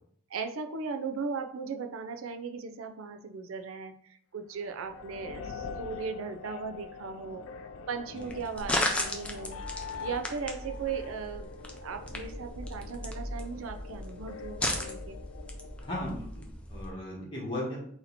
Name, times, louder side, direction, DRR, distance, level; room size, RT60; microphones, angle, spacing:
voice 1, 0.3-7.5 7.9-9.6 10.0-11.5 11.8-15.2, right 5 dB, 90° right, 7 dB, 0.5 m, -37 dB
sound 1, 4.6-15.9, left 5 dB, 80° left, 0.3 m, -44 dB
sound 2, 8.2-16.9, left 1 dB, 5° left, 0.4 m, -36 dB
voice 2, 15.8-17.9, left 1 dB, 25° left, -4 dB, 1.5 m, -36 dB
4.1 x 2.9 x 4.1 m, 0.63 s
head